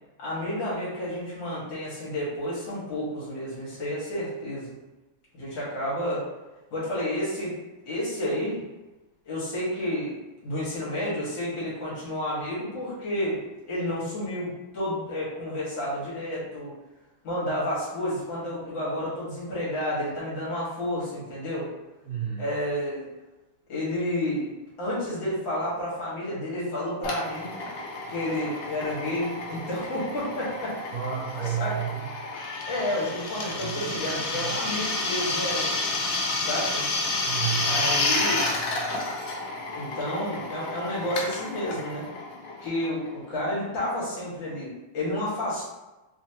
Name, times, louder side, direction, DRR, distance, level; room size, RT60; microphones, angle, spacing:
voice 1, 0.2-4.7 5.3-6.3 6.7-7.6 7.9-8.6 9.3-10.1 10.4-13.4 13.7-16.7 17.2-21.7 22.4-23.1 23.7-24.5 24.8-27.5 28.1-30.9 31.4-31.8 32.7-35.7 36.4-36.9 37.6-38.5 39.8-42.1 42.6-45.7, left 1 dB, 65° left, -7 dB, 2.1 m, -30 dB
voice 2, 22.1-22.4 30.9-32.0 33.6-34.6 37.2-37.9, right 8 dB, 75° right, -6 dB, 0.7 m, -32 dB
Drill, 27.0-43.4, left 2 dB, 85° left, 0.7 m, -30 dB
4.1 x 2.7 x 2.8 m, 1.1 s
omnidirectional pair, 2.3 m